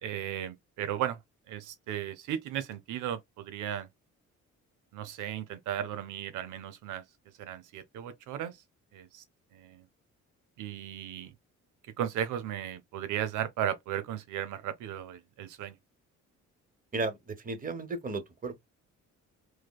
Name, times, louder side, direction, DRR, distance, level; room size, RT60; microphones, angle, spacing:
voice 1, 0.0-1.2 1.5-3.9 4.9-7.0 7.4-8.6 8.9-9.2 9.5-9.9 10.6-11.3 12.0-15.8, right 10 dB, 85° right, 0.6 m, -35 dB
voice 2, 16.9-18.6, right 3 dB, 30° right, 1.1 m, -34 dB
4.8 x 2.0 x 2.2 m
cardioid pair, 90°, 30 cm